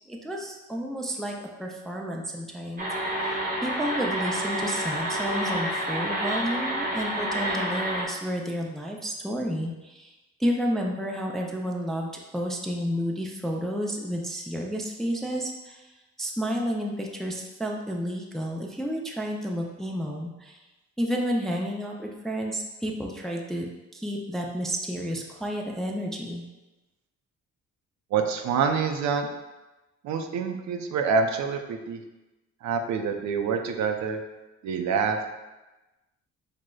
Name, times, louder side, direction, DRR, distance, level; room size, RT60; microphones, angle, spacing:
voice 1, 0.1-2.9 3.2-10.1 10.4-15.9 16.2-20.6 21.0-23.7 23.9-26.4, equal, ahead, 0 dB, 0.3 m, -31 dB
sound 1, 2.8-8.1, right 1 dB, 30° right, 0.7 m, -29 dB
voice 2, 28.1-29.3 30.0-32.0 32.6-34.2 34.6-35.2, right 5 dB, 70° right, 5 dB, 0.4 m, -26 dB
4.9 x 2.0 x 2.2 m, 1.1 s
cardioid pair, 90°, 30 cm